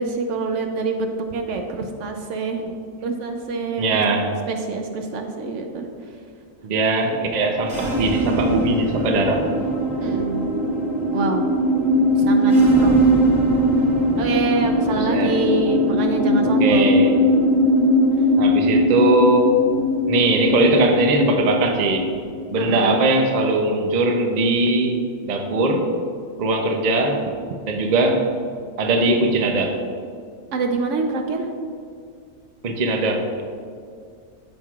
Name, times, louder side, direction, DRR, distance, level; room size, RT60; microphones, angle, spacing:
voice 1, 0.0-2.7 3.0-4.2 4.5-5.9 10.0-10.5 11.1-11.5 12.1-13.1 14.2-17.0 22.6-23.0 30.5-31.5, right 3 dB, 70° right, 4 dB, 0.9 m, -25 dB
voice 2, 3.8-4.3 6.6-9.4 15.1-15.4 16.4-17.2 18.4-19.6 20.1-22.1 22.5-25.0 25.2-25.9 26.4-27.2 27.7-28.2 28.8-29.8 32.6-33.4, right 2 dB, 45° right, 3 dB, 0.6 m, -20 dB
sound 1, 7.6-23.1, equal, 20° right, 1.2 m, -20 dB
13.5 x 4.6 x 2.4 m, 2.3 s
omnidirectional pair, 1.4 m